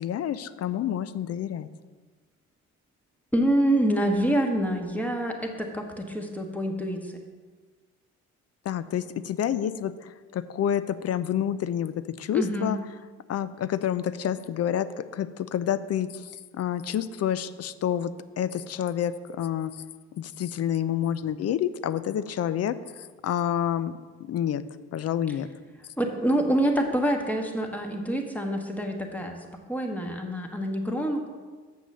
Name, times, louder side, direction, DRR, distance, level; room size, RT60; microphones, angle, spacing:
voice 1, 0.0-1.7 8.7-12.8 13.3-19.8 20.2-22.8 23.2-23.9 24.2-24.6 24.9-25.5, left 10 dB, 55° left, 15 dB, 0.5 m, -28 dB
voice 2, 3.3-7.2 12.3-12.7 25.3-25.4 26.0-29.4 29.7-31.3, right 1 dB, 5° left, 3 dB, 1.3 m, -26 dB
7.2 x 6.0 x 6.7 m, 1.4 s
cardioid pair, 90°, 30 cm